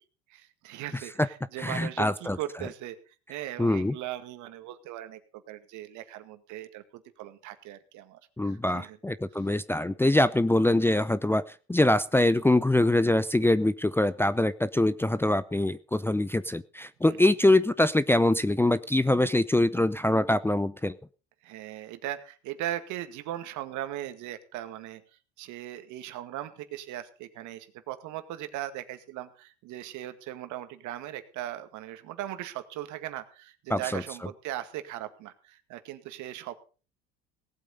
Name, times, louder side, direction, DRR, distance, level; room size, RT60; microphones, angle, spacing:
voice 1, 0.3-3.0 3.3-9.0 17.1-17.2 21.4-25.0 25.4-36.5, right 13 dB, 65° right, 9 dB, 2.0 m, -39 dB
voice 2, 1.6-2.4 3.6-4.0 8.4-20.9 33.7-34.0, left 1 dB, 5° left, 12 dB, 0.6 m, -24 dB
18.0 x 8.3 x 5.4 m, 0.37 s
hypercardioid pair, 75°, 32 cm